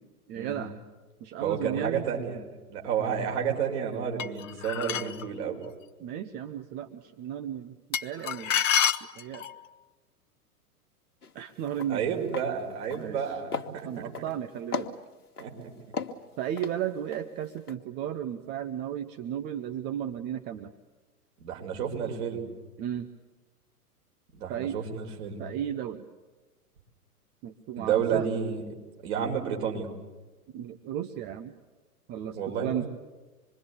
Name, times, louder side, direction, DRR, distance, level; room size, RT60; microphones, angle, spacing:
voice 1, 0.3-0.8 1.2-2.1 6.0-7.7 8.0-8.5 9.2-9.4 11.3-12.1 12.9-13.4 13.8-14.9 16.4-20.7 22.8-23.1 24.5-24.8 25.4-26.1 27.4-28.3 30.5-31.5 32.1-32.8, right 10 dB, 20° right, 8 dB, 0.8 m, -34 dB
voice 2, 1.4-2.4 2.7-5.6 11.9-13.9 15.4-15.7 21.4-22.4 24.3-25.5 27.8-28.6 29.0-29.9 32.3-32.9, right 7 dB, 45° right, 0 dB, 5.4 m, -31 dB
sound 1, 4.2-5.2 7.9-9.6, left 8 dB, 55° left, 1.0 m, -28 dB
sound 2, 11.2-11.4 11.7-11.9 12.3-12.5 12.8-13.2 13.5-14.3 14.7-15.5 15.9-17.2 17.6-17.8, left 5 dB, 75° left, 1.7 m, -36 dB
26.5 x 22.5 x 8.3 m, 1.2 s
figure-of-eight pair, 105°, 46 cm